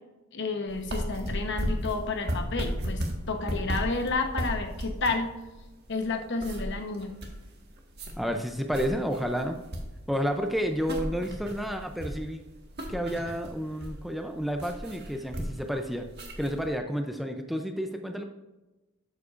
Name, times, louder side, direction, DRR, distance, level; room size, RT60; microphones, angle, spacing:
voice 1, 0.3-5.3 5.9-7.1, left 3 dB, 60° left, 5 dB, 1.0 m, -31 dB
sound 1, 0.7-16.7, equal, 50° right, 1.6 m, -35 dB
voice 2, 8.2-9.6 10.1-12.4 12.9-16.1 16.4-18.2, equal, ahead, 5 dB, 0.4 m, -30 dB
12.0 x 8.2 x 2.5 m, 1.1 s
head